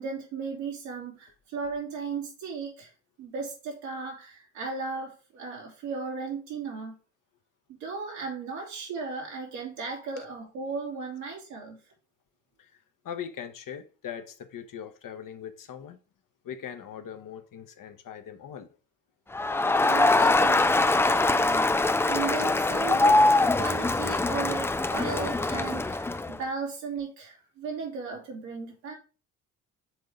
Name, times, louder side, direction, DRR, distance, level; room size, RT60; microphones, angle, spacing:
voice 1, 0.0-2.9 3.2-7.0 7.8-11.8 19.8-28.9, right 5 dB, 80° right, 2.6 m, -36 dB
voice 2, 13.0-16.0 16.4-18.7, left 8 dB, 50° left, 1.0 m, -40 dB
Crowd, 19.3-26.4, left 2 dB, 5° left, 0.3 m, -23 dB
6.2 x 3.8 x 4.9 m
hypercardioid pair, 45°, 40 cm